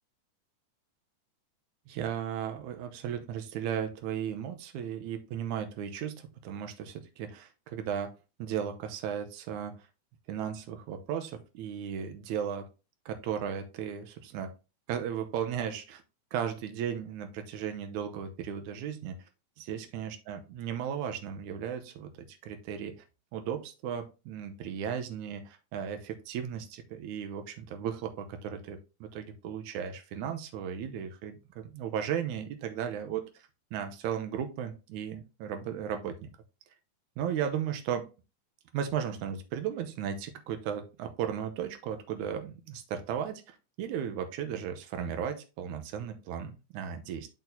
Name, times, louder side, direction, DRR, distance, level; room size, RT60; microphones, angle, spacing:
voice 1, 1.9-8.1 8.4-9.9 10.3-12.7 13.1-14.5 14.9-16.0 16.3-19.2 19.6-23.0 23.3-33.3 33.7-36.3 37.2-38.1 38.7-47.3, right 8 dB, 75° right, 6 dB, 2.1 m, -35 dB
10.5 x 4.1 x 2.7 m, 0.31 s
omnidirectional pair, 3.6 m